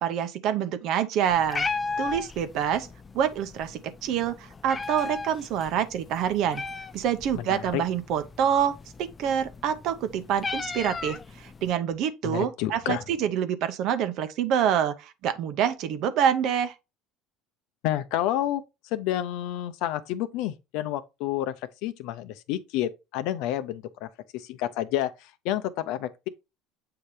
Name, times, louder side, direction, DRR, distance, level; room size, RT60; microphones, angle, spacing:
voice 1, 0.0-1.7 2.0-2.9 3.1-6.6 6.9-16.7, right 9 dB, 60° right, 0.9 m, -26 dB
Meow, 1.3-11.7, left 4 dB, 25° left, 0.5 m, -36 dB
voice 2, 7.3-7.8 12.2-13.0 17.8-18.6 18.9-26.3, left 12 dB, 70° left, 0.7 m, -30 dB
7.8 x 2.9 x 4.9 m
supercardioid pair, 100°, 0 cm